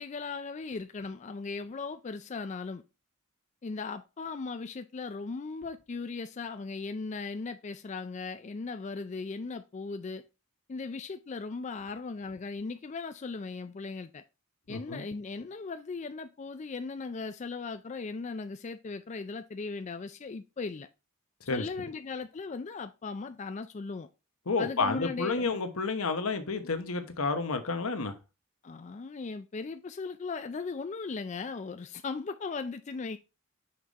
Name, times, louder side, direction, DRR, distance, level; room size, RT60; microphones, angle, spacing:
voice 1, 0.0-2.8 3.6-10.2 10.7-14.2 14.7-20.9 21.4-24.1 24.6-25.6 28.6-33.2, left 4 dB, 35° left, 0.4 m, -38 dB
voice 2, 14.7-15.0 21.5-21.6 24.5-28.1, left 4 dB, 85° left, 1.0 m, -30 dB
5.8 x 4.9 x 4.0 m
head